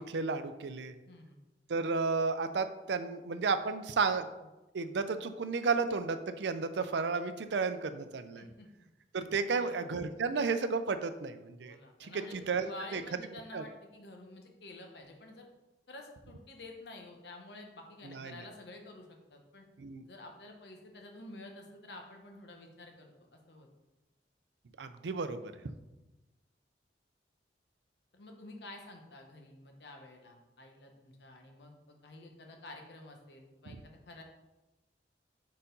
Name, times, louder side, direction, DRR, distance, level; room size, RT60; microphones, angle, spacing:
voice 1, 0.0-0.9 1.7-4.2 4.7-8.4 9.1-13.0 13.5-13.6 18.0-18.4 19.8-20.0 24.8-25.4, right 4 dB, 75° right, 10 dB, 0.4 m, -33 dB
voice 2, 1.1-1.4 8.4-8.7 9.4-9.7 11.6-15.5 15.9-19.7 20.1-23.7 28.1-34.2, left 2 dB, 70° left, 3 dB, 1.0 m, -50 dB
4.4 x 4.1 x 5.2 m, 1.0 s
head